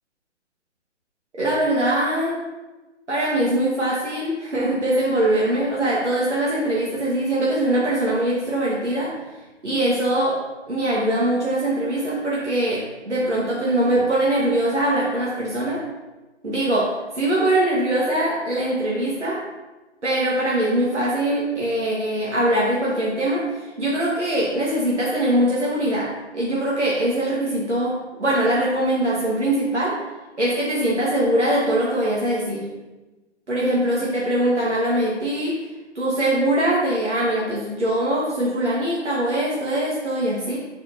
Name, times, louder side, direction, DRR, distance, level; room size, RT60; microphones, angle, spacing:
voice 1, 1.3-2.4 3.1-9.1 9.6-10.4 10.7-15.8 16.4-19.4 20.0-29.9 30.4-32.7 33.5-35.5 35.9-40.6, right 1 dB, 75° right, -6 dB, 1.6 m, -22 dB
7.9 x 4.4 x 2.7 m, 1.2 s
figure-of-eight pair, 140°, 35 cm